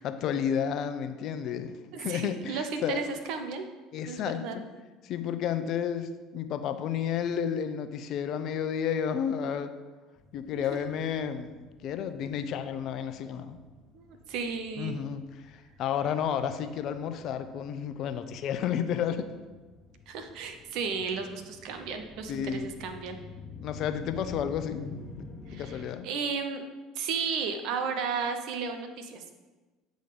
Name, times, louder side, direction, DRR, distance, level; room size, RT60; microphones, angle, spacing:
voice 1, 0.0-3.0 3.9-4.6 5.0-9.7 10.3-11.5 11.8-13.6 14.8-19.3 22.3-22.7 23.6-24.8 25.2-26.1, left 8 dB, 60° left, 10 dB, 0.6 m, -31 dB
voice 2, 1.9-3.7 4.1-4.6 10.5-10.8 13.9-14.9 20.1-23.2 25.5-26.6 27.0-29.3, right 5 dB, 65° right, 6 dB, 0.8 m, -34 dB
sound 1, 10.2-25.8, left 4 dB, 35° left, 1.2 m, -48 dB
8.2 x 3.9 x 5.1 m, 1.2 s
hypercardioid pair, 70°, 0 cm